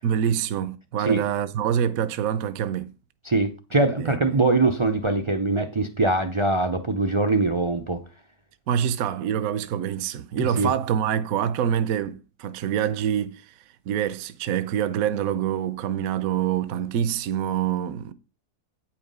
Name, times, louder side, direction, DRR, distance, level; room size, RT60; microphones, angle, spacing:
voice 1, 0.0-2.9 4.0-4.4 8.7-13.5 13.9-18.1, right 9 dB, 70° right, 1.0 m, -26 dB
voice 2, 3.2-8.0 10.4-10.7, right 2 dB, 50° right, 0.3 m, -23 dB
9.0 x 5.7 x 5.3 m
omnidirectional pair, 1.6 m